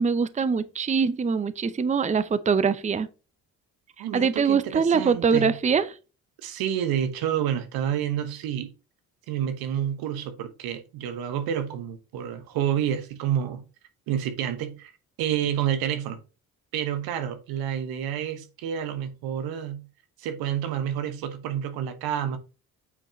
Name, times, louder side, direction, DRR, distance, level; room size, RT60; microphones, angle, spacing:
voice 1, 0.0-3.1 4.1-5.9, right 5 dB, 20° right, 0.6 m, -23 dB
voice 2, 4.0-5.5 6.4-8.7 9.3-13.6 14.1-14.9 15.2-16.2 16.7-19.8 20.2-22.4, right 9 dB, 80° right, 1.1 m, -29 dB
8.6 x 4.5 x 3.1 m
supercardioid pair, 65°, 35 cm